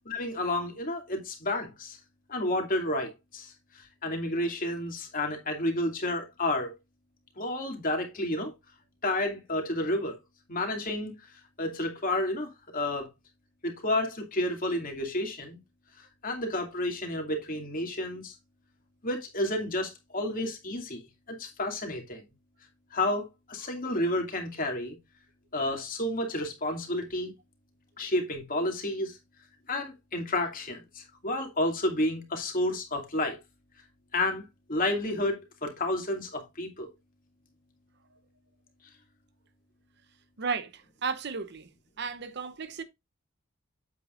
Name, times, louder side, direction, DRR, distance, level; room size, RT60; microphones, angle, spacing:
voice 1, 0.1-2.0 2.3-6.7 7.4-8.5 9.0-10.2 10.5-11.1 11.6-13.1 13.6-15.6 16.0-18.3 19.0-21.0 21.4-22.2 22.9-25.0 25.5-27.3 28.0-29.2 29.7-33.4 34.1-34.4 34.7-36.9, left 1 dB, 40° left, 2.4 m, -31 dB
voice 2, 40.4-41.7 42.0-42.8, right 5 dB, 55° right, 0.8 m, -34 dB
8.4 x 7.7 x 2.5 m
head